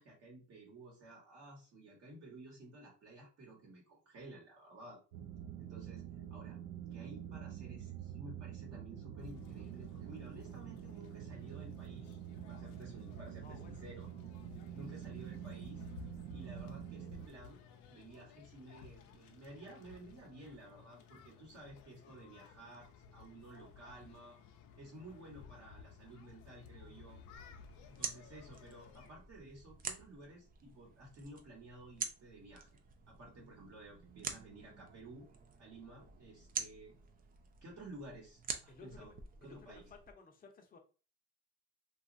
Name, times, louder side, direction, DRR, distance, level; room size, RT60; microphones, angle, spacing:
voice 1, 0.0-5.0 5.6-6.0 6.3-6.6 6.9-12.2 12.5-14.1 14.7-15.8 16.3-17.6 17.9-24.4 24.8-27.2 27.9-32.7 33.1-35.3 35.6-36.9 37.6-39.1 39.4-39.9, right 1 dB, 50° right, -2 dB, 1.1 m, -53 dB
sound 1, 5.1-17.3, right 10 dB, 90° right, 0.5 m, -47 dB
sound 2, 9.2-29.1, left 6 dB, 65° left, 0.6 m, -57 dB
voice 2, 13.4-13.8 38.7-39.1 39.4-40.8, left 4 dB, 25° left, 3 dB, 0.6 m, -57 dB
sound 3, 27.3-40.1, right 5 dB, 25° right, 0.4 m, -47 dB
2.9 x 2.4 x 2.5 m, 0.35 s
cardioid pair, 130°, 33 cm